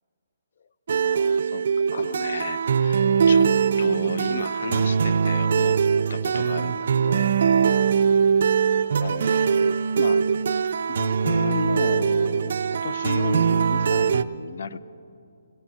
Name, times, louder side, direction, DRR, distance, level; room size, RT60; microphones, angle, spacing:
sound 1, 0.9-14.2, right 6 dB, 45° right, 0.3 m, -22 dB
voice 1, 1.0-1.6 1.9-3.5 3.8-5.8 6.1-7.3 8.7-9.7 10.0-10.2 10.9-14.8, left 5 dB, 50° left, 14 dB, 0.4 m, -33 dB
16.5 x 8.8 x 8.7 m, 2.6 s
hypercardioid pair, 180°, 0 cm